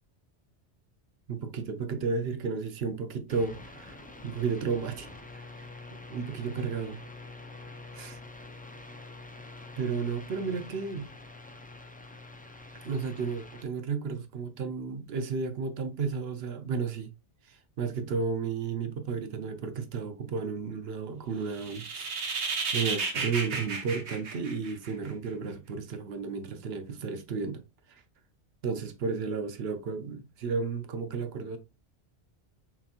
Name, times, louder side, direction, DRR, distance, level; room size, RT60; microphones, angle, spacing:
voice 1, 1.3-5.1 5.3-5.6 5.9-7.0 7.9-8.2 9.8-11.1 12.7-17.1 17.5-22.1 22.7-27.6 27.9-28.0 28.6-31.6, right 5 dB, 70° right, 0.9 m, -33 dB
sound 1, 3.3-13.6, left 2 dB, 10° left, 0.4 m, -46 dB
sound 2, 21.5-25.1, right 4 dB, 85° right, 1.2 m, -33 dB
5.8 x 2.9 x 2.4 m
omnidirectional pair, 1.1 m